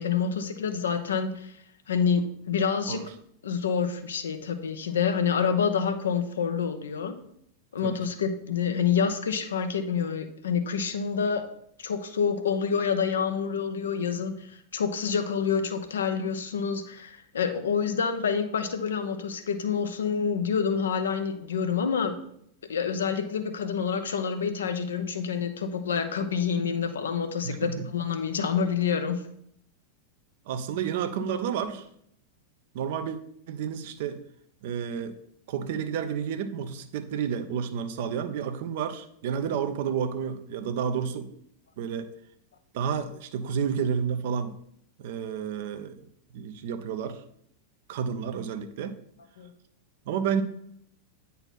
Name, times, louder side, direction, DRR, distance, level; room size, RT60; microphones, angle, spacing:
voice 1, 0.0-1.5 1.9-3.0 3.4-7.2 7.7-11.4 11.8-22.2 22.7-29.2 49.4-49.5, left 6 dB, 65° left, 8 dB, 0.7 m, -27 dB
voice 2, 27.4-27.9 30.5-31.9 32.7-33.2 33.5-34.2 34.6-35.2 35.5-41.3 41.8-42.1 42.7-44.6 45.0-46.1 46.3-47.2 47.9-49.0 50.1-50.4, right 7 dB, 50° right, 9 dB, 0.7 m, -30 dB
8.8 x 4.1 x 4.1 m, 0.70 s
figure-of-eight pair, 90°, 0 cm